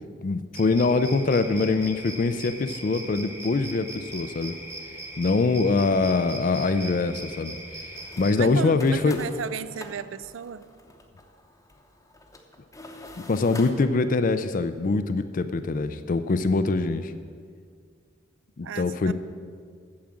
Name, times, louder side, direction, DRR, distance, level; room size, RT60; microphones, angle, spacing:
voice 1, 0.2-4.6 5.2-7.6 8.2-9.2 13.3-17.1 18.6-19.1, left 3 dB, 40° left, 10 dB, 0.4 m, -23 dB
sound 1, 0.5-8.3, right 2 dB, 15° right, 1.2 m, -40 dB
sound 2, 7.5-7.6 7.9-13.7, left 2 dB, 15° left, 0.8 m, -46 dB
voice 2, 8.3-10.7 18.6-19.1, right 7 dB, 70° right, 15 dB, 0.4 m, -34 dB
8.7 x 7.2 x 7.5 m, 2.1 s
head